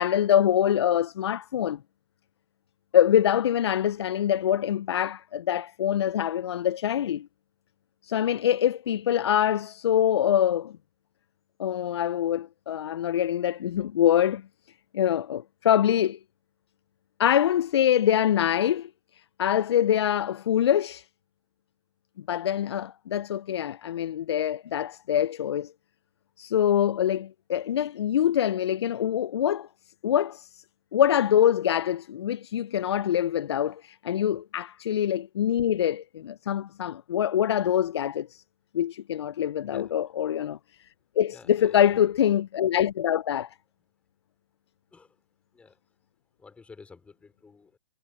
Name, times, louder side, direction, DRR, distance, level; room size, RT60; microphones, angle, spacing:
voice 1, 0.0-1.8 2.9-7.3 8.0-10.7 11.6-14.4 14.9-16.2 17.2-18.9 19.4-21.1 22.3-25.7 26.4-29.7 30.0-30.6 30.9-38.4 38.7-40.6 41.2-43.5, left 10 dB, 55° left, 0.6 m, -24 dB
voice 2, 41.3-42.0 44.9-45.2 45.5-45.8 46.4-47.8, left 4 dB, 5° left, 4.7 m, -51 dB
hypercardioid pair, 140°, 17 cm